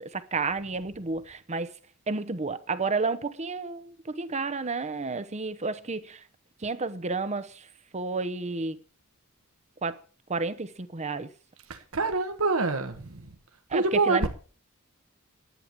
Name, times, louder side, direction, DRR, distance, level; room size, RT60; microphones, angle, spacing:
voice 1, 0.0-1.7 2.1-6.2 6.6-7.5 7.9-8.8 9.8-10.0 10.3-11.3 13.7-14.3, right 4 dB, 30° right, 0.9 m, -31 dB
voice 2, 11.7-13.3 13.7-14.3, right 3 dB, 70° right, 1.3 m, -26 dB
11.0 x 9.1 x 6.7 m
head